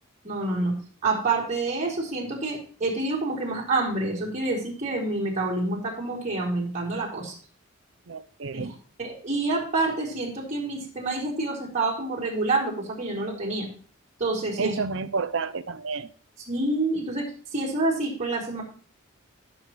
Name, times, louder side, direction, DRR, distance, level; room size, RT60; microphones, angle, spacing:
voice 1, 0.2-0.8 1.0-7.3 8.5-13.7 14.2-14.8 16.5-18.6, right 2 dB, 35° right, 4.0 m, -28 dB
voice 2, 8.1-8.7 14.6-16.1, right 4 dB, 60° right, 0.6 m, -30 dB
17.5 x 7.8 x 3.1 m
head